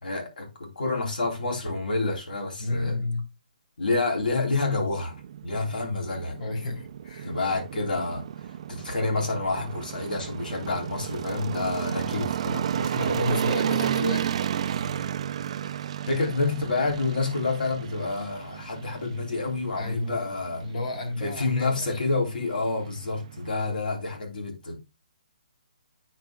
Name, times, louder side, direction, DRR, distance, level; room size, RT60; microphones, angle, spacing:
voice 1, 0.0-3.0 3.8-5.2 5.4-6.4 7.2-8.2 8.7-13.2 16.1-20.6 21.2-24.8, left 3 dB, 75° left, 3.4 m, -28 dB
voice 2, 2.6-3.2 6.4-7.3 12.7-14.4 19.7-20.3 20.6-22.0 23.6-23.8, left 2 dB, 60° left, 3.9 m, -31 dB
sound 1, 4.2-23.6, right 9 dB, 45° right, 0.4 m, -33 dB
9.2 x 5.4 x 2.2 m
hypercardioid pair, 160°, 5 cm